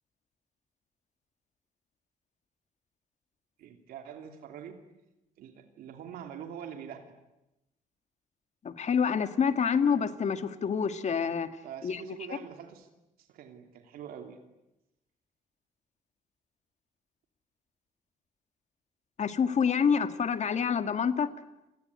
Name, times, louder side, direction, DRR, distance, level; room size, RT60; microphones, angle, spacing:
voice 1, 3.6-4.8 5.4-7.0 11.6-12.9 13.2-14.4, right 8 dB, 85° right, 6 dB, 2.8 m, -44 dB
voice 2, 8.6-11.5 11.8-12.0 19.2-21.3, left 6 dB, 50° left, 10 dB, 2.0 m, -27 dB
29.5 x 20.5 x 9.8 m, 0.92 s
cardioid pair, 80°, 15 cm